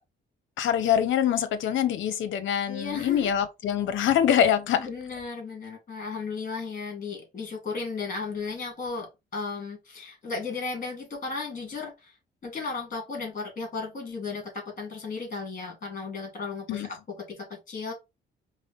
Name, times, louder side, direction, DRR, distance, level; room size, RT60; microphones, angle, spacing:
voice 1, 0.6-4.9 16.7-16.9, left 9 dB, 75° left, 0.7 m, -24 dB
voice 2, 2.7-3.3 4.8-12.1 12.4-17.9, left 4 dB, 40° left, 2.2 m, -35 dB
4.8 x 2.0 x 3.9 m
cardioid pair, 90°, 20 cm